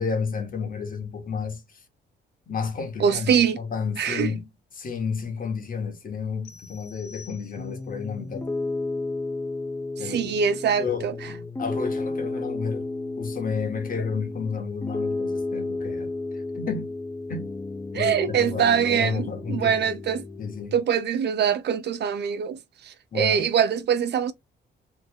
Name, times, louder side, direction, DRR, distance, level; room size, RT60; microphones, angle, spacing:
voice 1, 0.0-1.8 2.5-4.5 4.7-8.5 10.0-10.3 10.8-12.9 13.2-16.9 17.3-17.5 17.9-19.9 20.4-20.7 23.1-23.5, left 5 dB, 45° left, 1.4 m, -31 dB
voice 2, 3.0-3.6 4.0-4.3 10.0-11.1 17.9-20.2 20.7-24.3, right 8 dB, 60° right, 0.6 m, -23 dB
sound 1, 6.4-8.0, left 6 dB, 85° left, 1.3 m, -49 dB
Piano, 7.6-20.6, left 2 dB, 15° left, 0.5 m, -32 dB
3.2 x 2.4 x 3.8 m
cardioid pair, 90°, 20 cm